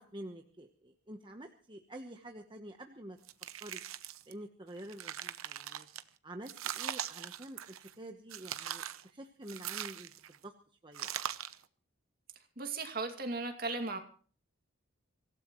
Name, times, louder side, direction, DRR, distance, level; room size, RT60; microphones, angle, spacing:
voice 1, 0.0-3.2 3.6-3.8 4.3-5.9 6.2-10.1 10.4-10.5 10.8-11.1, right 1 dB, 20° right, 4 dB, 1.1 m, -48 dB
sound 1, 3.2-4.3 4.8-6.0 6.5-7.9 8.3-9.0 9.5-10.4 10.9-11.6, right 10 dB, 80° right, 0.8 m, -41 dB
voice 2, 12.6-14.0, right 3 dB, 45° right, 4 dB, 2.4 m, -36 dB
25.0 x 16.0 x 3.1 m, 0.43 s
head